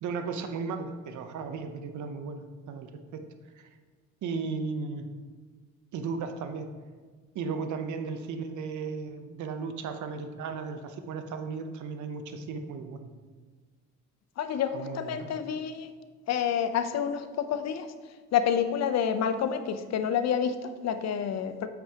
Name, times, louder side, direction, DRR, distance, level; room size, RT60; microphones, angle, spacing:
voice 1, 0.0-3.2 3.6-3.7 4.2-5.1 5.9-6.7 7.3-13.1 14.7-15.4, right 5 dB, 75° right, 8 dB, 0.7 m, -35 dB
voice 2, 14.4-15.9 16.3-17.9 18.3-21.7, left 8 dB, 60° left, 10 dB, 0.6 m, -28 dB
8.2 x 5.9 x 2.9 m, 1.5 s
cardioid pair, 90°, 30 cm